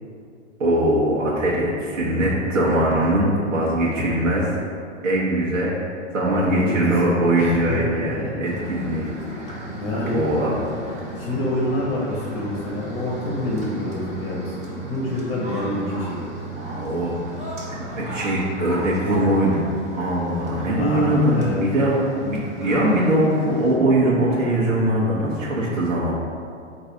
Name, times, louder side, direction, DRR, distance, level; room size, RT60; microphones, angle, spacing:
voice 1, 0.6-4.6 5.0-5.7 6.1-9.7 10.1-10.5 16.5-17.2 18.0-19.6 19.9-26.1, right 1 dB, 85° right, -5 dB, 0.9 m, -21 dB
voice 2, 6.4-7.8 8.1-8.4 9.8-10.3 11.1-14.5 14.9-16.2 20.8-21.6, left 1 dB, 25° left, -5 dB, 1.0 m, -27 dB
sound 1, 8.4-23.7, right 1 dB, 20° right, 1.0 m, -35 dB
4.0 x 2.6 x 4.6 m, 2.4 s
hypercardioid pair, 105°, 37 cm